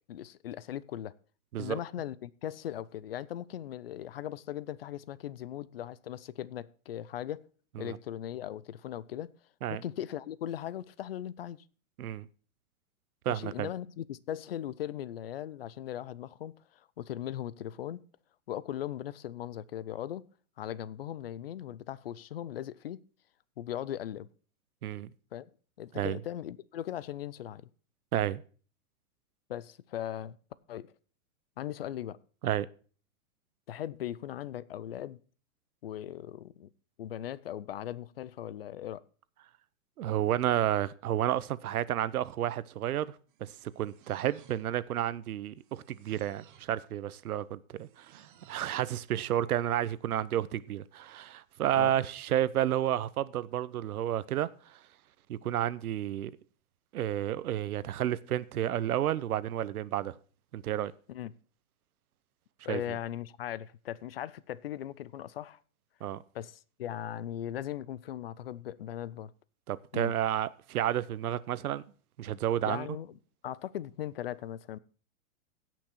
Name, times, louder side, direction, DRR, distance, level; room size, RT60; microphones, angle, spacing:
voice 1, 0.1-1.2 1.6-7.5 7.8-9.3 9.7-11.6 13.3-18.0 18.5-20.2 20.6-23.0 23.6-24.3 25.3-25.5 25.8-27.6 29.5-30.4 30.7-30.9 31.6-32.2 33.7-35.2 35.8-36.7 37.0-39.0 51.7-51.9 61.1-61.3 62.6-65.6 66.3-69.3 69.9-70.1 72.6-73.1 73.4-74.8, left 11 dB, 45° left, 0.5 m, -39 dB
voice 2, 13.2-13.7 24.8-25.1 25.9-26.2 28.1-28.4 32.4-32.7 40.0-54.8 55.3-56.3 56.9-60.2 60.5-60.9 62.7-62.8 66.0-66.2 69.7-71.8 72.2-72.9, right 11 dB, 85° right, 0.9 m, -31 dB
sound 1, 43.3-44.9 45.6-46.8 47.8-48.8, right 9 dB, 35° right, 1.1 m, -59 dB
16.5 x 6.1 x 4.3 m
hypercardioid pair, 170°, 42 cm